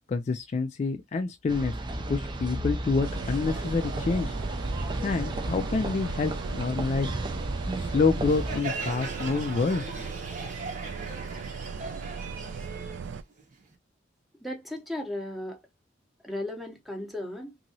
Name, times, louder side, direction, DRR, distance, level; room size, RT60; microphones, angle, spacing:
voice 1, 0.1-1.7 2.1-4.3 5.0-7.1 7.8-10.1, left 4 dB, 40° left, 0.3 m, -27 dB
sound 1, 1.5-8.6, right 1 dB, 25° right, 0.4 m, -33 dB
sound 2, 3.0-13.2, right 5 dB, 90° right, 0.3 m, -38 dB
Crowd, 8.3-13.7, right 3 dB, 45° right, 0.9 m, -38 dB
voice 2, 14.4-15.6 16.2-17.6, left 1 dB, ahead, 0.8 m, -35 dB
2.9 x 2.6 x 2.7 m
head